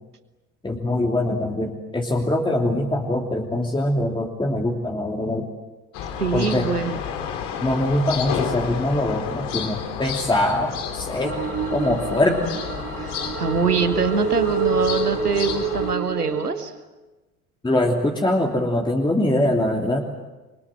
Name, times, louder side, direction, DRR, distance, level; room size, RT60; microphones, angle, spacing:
voice 1, 0.6-5.5 6.3-6.7 7.6-11.4 11.7-12.4 17.6-20.2, left 1 dB, 10° left, 1 dB, 3.0 m, -23 dB
sound 1, 5.9-15.9, left 7 dB, 55° left, 3.5 m, -31 dB
voice 2, 6.2-7.0 13.0-16.7, right 5 dB, 90° right, 10 dB, 1.4 m, -24 dB
sound 2, 11.2-16.5, right 5 dB, 30° right, 3.6 m, -27 dB
29.5 x 23.5 x 7.7 m, 1.2 s
figure-of-eight pair, 70°, 45 cm